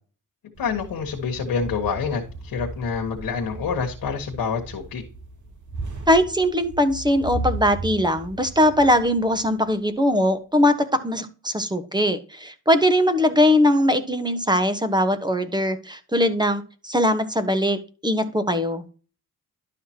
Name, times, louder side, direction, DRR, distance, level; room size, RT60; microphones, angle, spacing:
voice 1, 0.6-5.0, left 6 dB, 90° left, 2 dB, 1.5 m, -27 dB
sound 1, 0.6-9.8, right 3 dB, 60° right, 3.0 m, -36 dB
voice 2, 6.1-17.8 18.0-18.8, left 1 dB, 10° right, 9 dB, 1.2 m, -21 dB
11.5 x 5.8 x 2.9 m, 0.36 s
cardioid pair, 70°, 34 cm